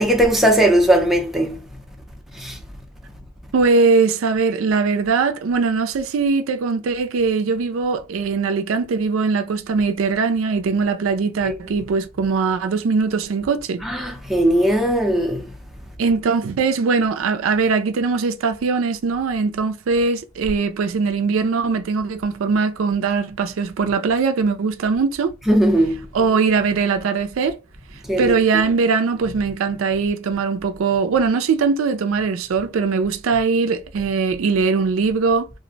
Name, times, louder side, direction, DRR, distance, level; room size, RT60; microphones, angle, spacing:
voice 1, 0.0-1.6 2.4-2.6 11.4-11.5 13.8-15.5 25.5-26.0 28.1-28.3, right 1 dB, ahead, 0.5 m, -18 dB
voice 2, 3.5-13.8 16.0-25.3 26.1-27.6 28.2-35.5, right 4 dB, 70° right, 0.4 m, -20 dB
2.5 x 2.1 x 3.8 m
head